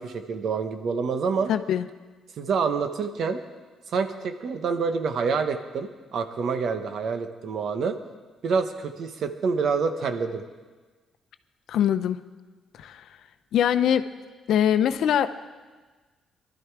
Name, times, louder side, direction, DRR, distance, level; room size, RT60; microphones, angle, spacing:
voice 1, 0.0-1.5 2.4-3.4 3.9-8.0 8.4-10.4, right 5 dB, 65° right, 8 dB, 1.2 m, -27 dB
voice 2, 1.5-1.9 11.7-12.2 12.8-13.1 13.5-14.0 14.5-15.3, left 9 dB, 75° left, 10 dB, 0.7 m, -22 dB
19.0 x 12.0 x 4.8 m, 1.3 s
cardioid pair, 90°, 0 cm